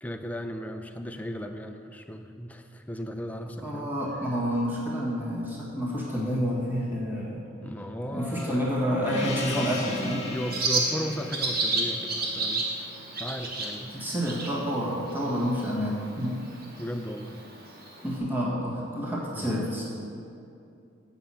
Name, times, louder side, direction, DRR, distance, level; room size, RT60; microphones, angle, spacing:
voice 1, 0.0-3.9 7.6-8.6 8.9-10.0 10.3-12.7 13.1-14.1 16.8-17.4 19.4-19.5, equal, 5° left, 6 dB, 0.4 m, -36 dB
voice 2, 3.6-7.4 8.1-10.3 13.9-16.4 18.0-19.8, equal, 10° right, -6 dB, 1.7 m, -29 dB
Gong, 9.0-14.0, left 2 dB, 30° left, 1.6 m, -38 dB
Bird, 9.2-18.2, right 2 dB, 45° right, 1.4 m, -33 dB
9.3 x 5.6 x 7.6 m, 2.6 s
head